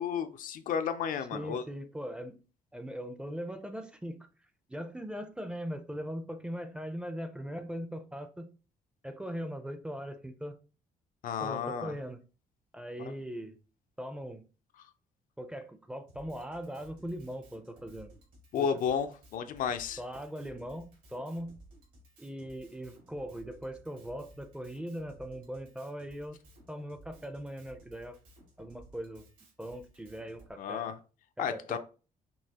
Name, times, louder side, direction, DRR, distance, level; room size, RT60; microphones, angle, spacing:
voice 1, 0.0-1.6 11.2-11.9 13.0-13.1 18.5-20.0 30.6-31.0 31.4-31.8, left 7 dB, 70° left, 0.5 m, -32 dB
voice 2, 1.3-2.4 2.7-4.3 4.7-8.5 9.0-10.6 11.4-12.2 12.7-13.6 14.0-14.5 15.4-18.1 18.6-18.7 20.0-21.6 22.2-26.4 26.7-28.2 28.6-29.2 29.6-30.9 31.4-31.8, equal, 5° right, 0.5 m, -40 dB
Drum kit, 16.1-30.5, right 1 dB, 75° right, 2.2 m, -57 dB
5.4 x 2.7 x 2.8 m
cardioid pair, 125°, 14 cm